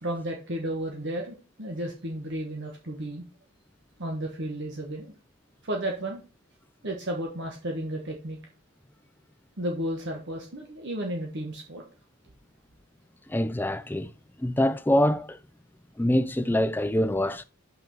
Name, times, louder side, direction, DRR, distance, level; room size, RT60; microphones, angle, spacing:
voice 1, 0.0-3.2 4.0-5.1 5.6-6.2 6.8-8.4 9.6-11.8, right 1 dB, 50° right, 1.2 m, -33 dB
voice 2, 13.3-14.1 14.4-15.4 16.0-17.4, left 1 dB, 10° left, 0.3 m, -24 dB
5.7 x 4.5 x 6.2 m
head